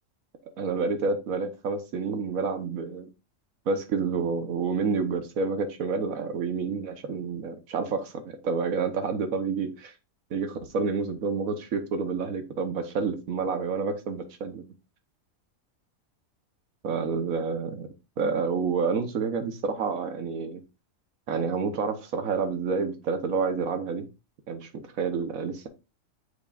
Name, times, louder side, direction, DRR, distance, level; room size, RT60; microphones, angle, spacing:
voice 1, 0.6-3.1 3.7-9.9 10.3-14.6 16.8-17.9 18.2-20.6 21.3-24.1 24.5-25.7, right 5 dB, 85° right, 1.5 m, -29 dB
7.9 x 5.4 x 2.4 m
omnidirectional pair, 1.4 m